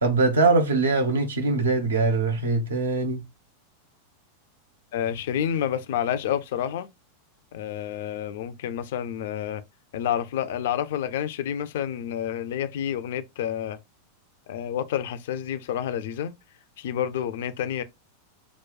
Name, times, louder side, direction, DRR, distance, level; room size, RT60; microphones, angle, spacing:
voice 1, 0.0-3.2, right 3 dB, 70° right, 0.8 m, -22 dB
voice 2, 4.9-6.9 7.5-9.6 9.9-13.8 14.5-16.3 16.8-17.8, left 10 dB, 55° left, 0.4 m, -29 dB
5.9 x 2.2 x 2.3 m
figure-of-eight pair, 90°, 0 cm